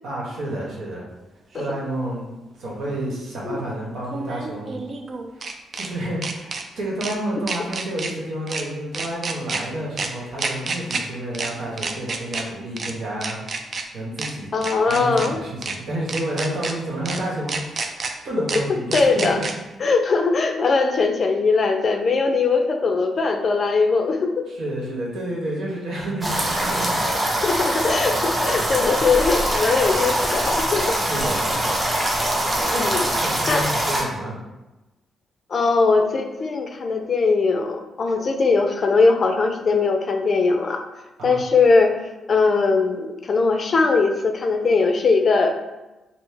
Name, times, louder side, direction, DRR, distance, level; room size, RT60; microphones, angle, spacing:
voice 1, 0.0-1.1 1.5-2.3 2.6-4.8 5.3-5.5 5.7-13.4 13.9-14.5 14.9-17.9 18.2-19.4 24.5-27.1 28.5-29.0 30.9-32.2 33.0-34.4 41.2-41.4, right 1 dB, 75° right, -4 dB, 1.2 m, -30 dB
sound 1, 1.6-1.7 4.0-5.9 6.2-6.6 7.0-7.1 7.5-8.1 8.5-8.6 8.9-9.6 10.0-10.1 10.4-11.0 11.3-11.5 11.8-12.4 12.8-12.9 13.2-13.8 14.2-14.3 14.6-15.3 15.6-15.8 16.1-16.7 17.0-17.2 17.5-18.1 18.5-18.6 18.9-19.5, right 4 dB, 50° right, 0.4 m, -28 dB
voice 2, 14.5-15.4 18.9-19.4 19.8-24.3 27.0-27.2 27.4-31.0 32.6-33.1 33.5-33.6 35.5-40.8 41.2-42.0 42.3-45.6, left 4 dB, 45° left, 4 dB, 0.4 m, -20 dB
sound 2, 26.2-34.0, right 1 dB, 30° right, 0.7 m, -23 dB
4.2 x 2.0 x 3.3 m, 1.0 s
cardioid pair, 100°, 0 cm